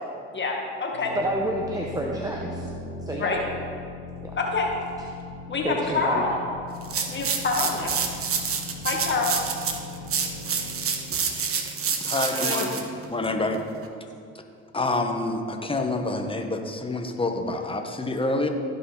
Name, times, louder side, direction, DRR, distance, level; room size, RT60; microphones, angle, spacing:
voice 1, 0.3-1.1 3.2-3.4 4.3-4.7 5.5-6.3 7.1-8.1 8.8-9.3 12.3-12.7, left 4 dB, 35° left, 0 dB, 1.9 m, -27 dB
sound 1, 0.9-12.4, left 3 dB, 65° right, 2.0 m, -40 dB
voice 2, 1.1-2.7 3.1-3.4 4.2-4.3 5.6-6.4, right 1 dB, 10° right, 0 dB, 1.0 m, -28 dB
sound 2, 6.8-13.9, right 6 dB, 40° right, 1.3 m, -28 dB
voice 3, 12.0-12.8 13.1-13.6 14.7-18.5, left 2 dB, 15° left, 4 dB, 1.4 m, -27 dB
15.5 x 5.6 x 4.0 m, 2.5 s
hypercardioid pair, 65°, 33 cm